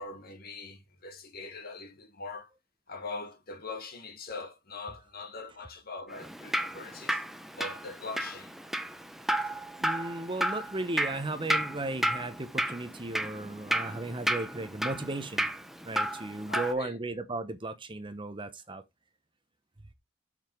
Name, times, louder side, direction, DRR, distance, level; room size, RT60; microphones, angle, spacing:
voice 1, 0.0-2.5 2.9-7.2 7.6-8.5 16.5-17.0, left 3 dB, 50° left, 1.9 m, -42 dB
Drip, 6.1-16.7, right 1 dB, ahead, 0.7 m, -33 dB
voice 2, 9.8-15.5 15.8-18.8, right 2 dB, 25° right, 1.0 m, -35 dB
7.1 x 5.8 x 4.6 m
head